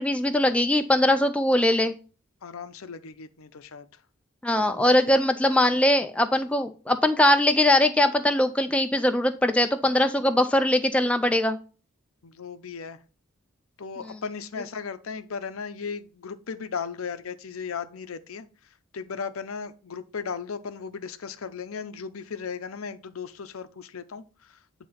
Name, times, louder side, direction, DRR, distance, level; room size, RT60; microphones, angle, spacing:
voice 1, 0.0-2.0 4.4-11.6, left 1 dB, 5° left, 0.4 m, -21 dB
voice 2, 2.4-4.0 4.5-4.9 5.7-5.8 12.2-13.0 13.8-18.5 18.9-24.9, left 5 dB, 80° left, 0.6 m, -36 dB
8.5 x 2.9 x 5.5 m
head